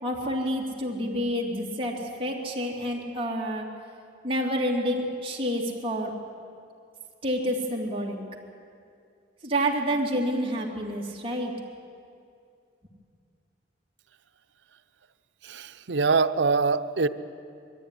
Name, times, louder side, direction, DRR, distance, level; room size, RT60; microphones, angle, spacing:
voice 1, 0.0-3.6 4.2-6.1 7.2-8.2 9.4-11.5, equal, 30° right, -1 dB, 2.8 m, -28 dB
voice 2, 15.4-17.1, right 4 dB, 90° right, 10 dB, 0.8 m, -24 dB
22.0 x 14.5 x 10.0 m, 2.4 s
head